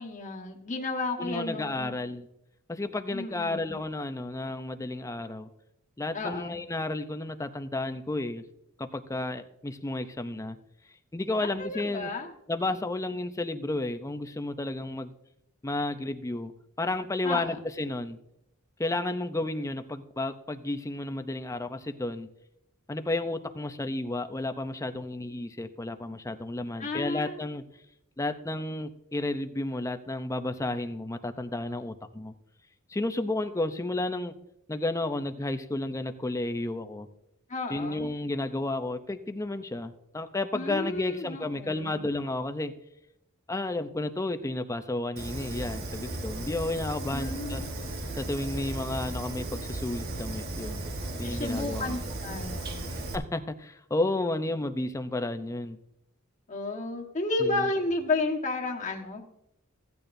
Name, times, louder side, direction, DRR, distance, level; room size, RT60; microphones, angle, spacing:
voice 1, 0.0-1.9 3.1-3.7 6.1-6.6 11.4-12.3 17.2-17.6 26.8-27.4 37.5-38.1 40.5-42.0 47.1-47.7 51.2-52.8 56.5-59.2, left 2 dB, 35° left, 1 dB, 1.4 m, -32 dB
voice 2, 1.2-2.3 2.7-5.5 6.0-8.4 8.8-10.6 11.1-12.1 12.5-15.1 15.6-16.5 16.8-18.2 18.8-22.3 22.9-27.6 28.2-32.3 32.9-34.3 34.7-37.1 37.7-42.7 43.5-47.6 48.2-50.8 51.2-52.0 53.1-55.8 57.4-57.7, left 2 dB, 15° left, 8 dB, 0.5 m, -32 dB
Fire, 45.2-53.2, right 2 dB, 50° right, 1.2 m, -36 dB
15.5 x 8.8 x 2.6 m, 0.80 s
head